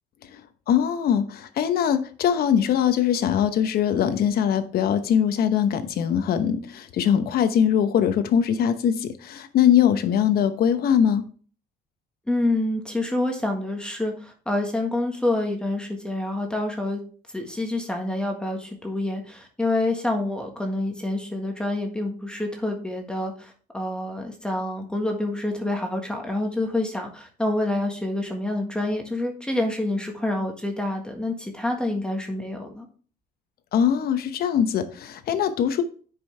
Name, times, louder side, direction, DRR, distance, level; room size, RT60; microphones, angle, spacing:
voice 1, 0.7-11.2 33.7-35.8, left 9 dB, 65° left, 1.0 m, -22 dB
voice 2, 12.3-17.0 17.3-32.9, left 1 dB, 5° left, 1.6 m, -27 dB
9.7 x 5.5 x 3.4 m
cardioid pair, 110°, 17 cm